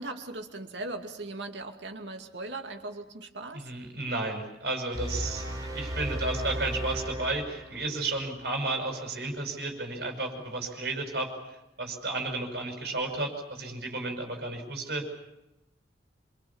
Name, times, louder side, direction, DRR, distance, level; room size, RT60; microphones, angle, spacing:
voice 1, 0.0-3.7, right 2 dB, 80° right, 5 dB, 2.5 m, -39 dB
voice 2, 3.5-5.5 5.7-11.3 11.8-15.1, right 2 dB, 60° right, 3 dB, 6.1 m, -32 dB
sound 1, 4.9-8.1, right 1 dB, 20° right, 5.5 m, -35 dB
27.0 x 24.5 x 7.2 m, 0.91 s
head